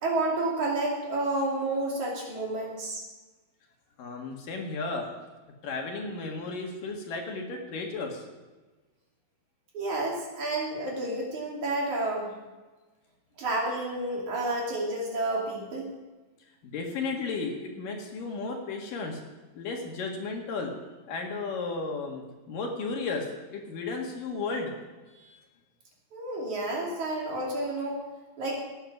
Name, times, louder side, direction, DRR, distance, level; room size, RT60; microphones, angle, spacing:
voice 1, 0.0-3.0 9.7-12.4 13.4-15.9 26.1-28.0 28.4-28.5, right 2 dB, 50° right, -2 dB, 3.9 m, -30 dB
voice 2, 4.0-5.1 5.6-8.2 16.6-19.2 19.6-20.7 21.1-22.2 22.5-24.7 25.1-25.4, left 3 dB, 65° left, 1 dB, 3.2 m, -34 dB
17.0 x 9.0 x 6.0 m, 1.2 s
omnidirectional pair, 4.5 m